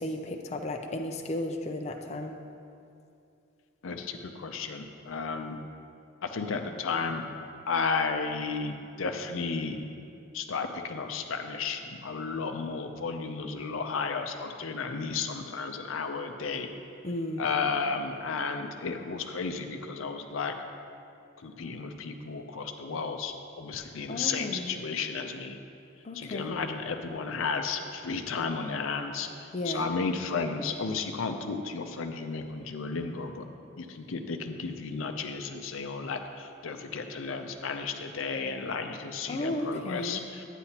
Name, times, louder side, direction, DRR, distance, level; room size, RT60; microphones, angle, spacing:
voice 1, 0.0-2.3 17.0-17.4 24.1-24.8 26.0-26.5 29.5-29.9 39.3-40.2, left 1 dB, 35° left, 3 dB, 0.4 m, -34 dB
voice 2, 3.8-5.6 6.2-7.2 7.7-9.8 10.3-16.7 17.4-20.5 21.4-25.6 26.1-29.3 29.7-33.4 33.8-40.4, left 4 dB, 90° left, 6 dB, 0.6 m, -33 dB
9.7 x 9.0 x 2.9 m, 2.5 s
head